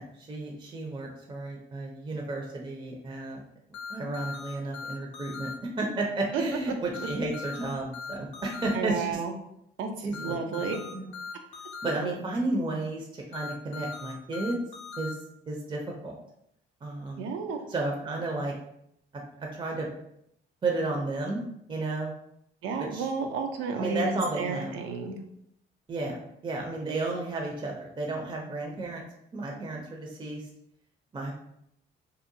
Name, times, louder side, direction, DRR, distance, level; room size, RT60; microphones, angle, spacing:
voice 1, 0.0-3.4 3.9-5.5 5.8-9.2 10.0-11.1 11.8-14.6 15.0-15.2 15.5-16.2 16.8-17.2 17.7-18.5 19.1-19.9 20.6-21.4 21.7-22.1 22.8-23.1 23.8-24.7 25.9-29.0 29.3-30.5 31.1-31.3, right 2 dB, 25° right, 0 dB, 0.5 m, -32 dB
sound 1, 3.7-5.5 6.9-8.7 10.1-11.9 13.3-15.1, left 5 dB, 75° left, 0.5 m, -39 dB
voice 2, 8.7-9.3 9.8-10.8 17.2-17.7 22.6-25.2, right 5 dB, 90° right, 4 dB, 0.5 m, -32 dB
2.7 x 2.1 x 2.6 m, 0.75 s
cardioid pair, 90°, 20 cm